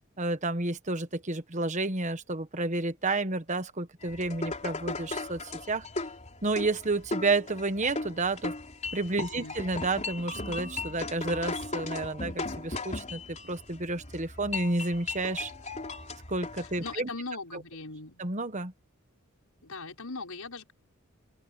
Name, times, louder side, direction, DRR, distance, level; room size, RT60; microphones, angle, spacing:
voice 1, 0.2-5.9 6.4-8.5 8.9-15.5 16.3-17.1 18.2-18.7, right 2 dB, 35° right, 1.3 m, -31 dB
sound 1, 4.0-17.0, left 3 dB, 30° left, 4.0 m, -37 dB
voice 2, 9.3-9.6 16.6-18.2 19.6-20.7, left 3 dB, 80° left, 5.8 m, -40 dB
open air
head